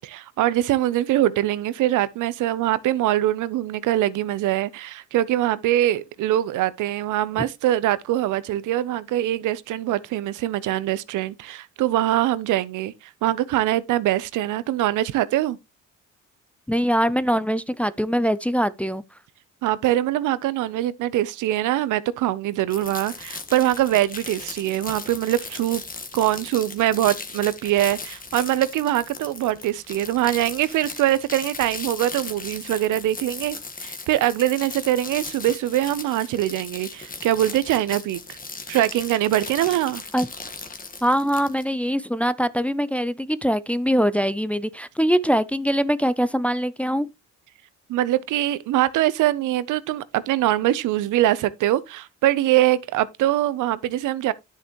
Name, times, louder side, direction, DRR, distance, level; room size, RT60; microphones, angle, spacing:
voice 1, 0.0-12.9 13.2-15.6 19.6-25.8 26.1-38.4 38.7-40.0 47.9-54.3, right 14 dB, 85° right, 0.7 m, -23 dB
voice 2, 16.7-19.0 40.1-40.3 41.0-47.1, equal, 5° left, 0.4 m, -22 dB
sound 1, 22.7-41.6, left 4 dB, 30° left, 1.5 m, -37 dB
10.5 x 6.5 x 3.0 m
cardioid pair, 90°, 30 cm